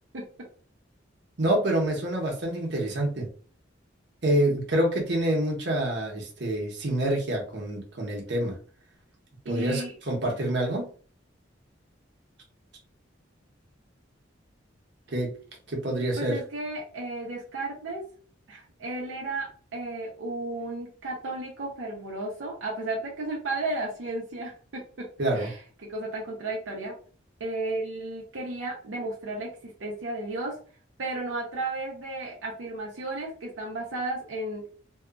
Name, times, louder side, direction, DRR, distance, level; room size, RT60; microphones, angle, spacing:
voice 1, 1.4-3.3 4.2-8.5 9.5-10.9 15.1-15.3 15.7-16.4 25.2-25.5, right 1 dB, 65° right, 0 dB, 1.0 m, -27 dB
voice 2, 9.4-9.9 16.2-18.0 18.5-19.5 19.7-25.1 25.3-25.6 25.9-27.0 27.4-30.6 31.0-34.7, right 2 dB, 85° right, -3 dB, 0.7 m, -33 dB
2.8 x 2.4 x 2.4 m, 0.42 s
head